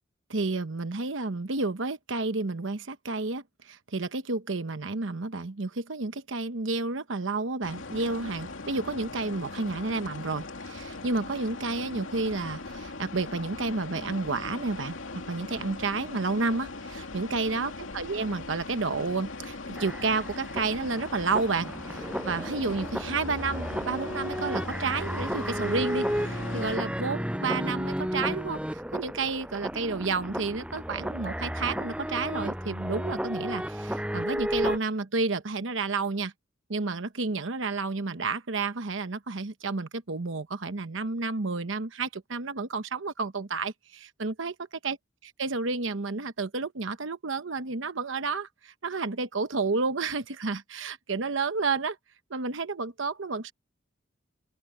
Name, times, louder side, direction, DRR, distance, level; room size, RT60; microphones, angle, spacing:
voice 1, 0.3-15.0 15.3-36.3 36.7-44.5 44.8-45.0 45.4-52.0 52.3-53.5, right 3 dB, 75° right, 1.0 m, -31 dB
sound 1, 7.6-26.8, left 3 dB, 90° left, 2.7 m, -40 dB
sound 2, 19.8-34.8, equal, 5° right, 6.7 m, -33 dB
open air
head